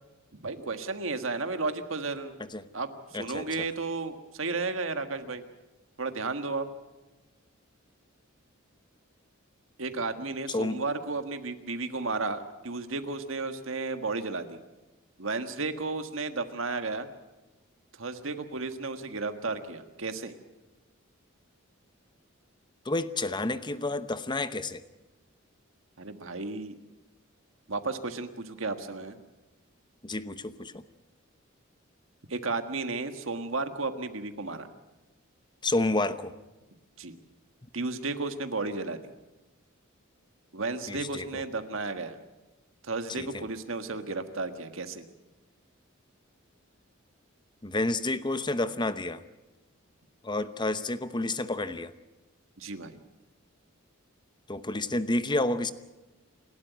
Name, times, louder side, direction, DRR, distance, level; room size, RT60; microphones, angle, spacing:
voice 1, 0.3-2.4 2.7-5.4 6.0-6.7 9.8-14.6 15.2-17.1 17.9-20.4 26.0-26.8 27.7-29.2 32.3-34.7 37.0-37.2 37.7-39.0 40.5-42.2 42.8-45.1 52.6-53.0, right 3 dB, 70° right, 8 dB, 1.6 m, -33 dB
voice 2, 3.1-3.5 10.5-10.8 22.8-24.8 30.0-30.8 35.6-36.3 40.9-41.4 43.2-43.4 47.6-49.2 50.2-51.9 54.5-55.7, left 2 dB, 20° left, 13 dB, 0.9 m, -30 dB
28.0 x 12.5 x 9.3 m, 1.1 s
head